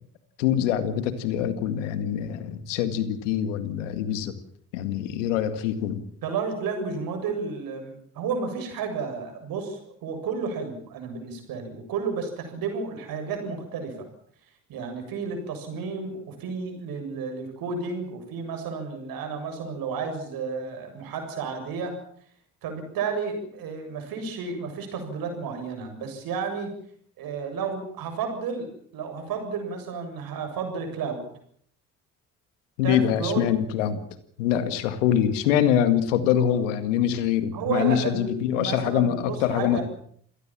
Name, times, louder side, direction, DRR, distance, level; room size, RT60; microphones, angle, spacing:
voice 1, 0.4-4.3 4.7-6.0 32.8-34.0 34.4-39.8, left 10 dB, 90° left, 11 dB, 2.0 m, -24 dB
voice 2, 6.2-14.1 14.7-22.0 22.6-26.7 27.2-31.3 32.8-33.5 37.5-39.8, right 5 dB, 70° right, 5 dB, 7.4 m, -32 dB
27.5 x 18.0 x 7.6 m, 0.63 s
hypercardioid pair, 50°, 36 cm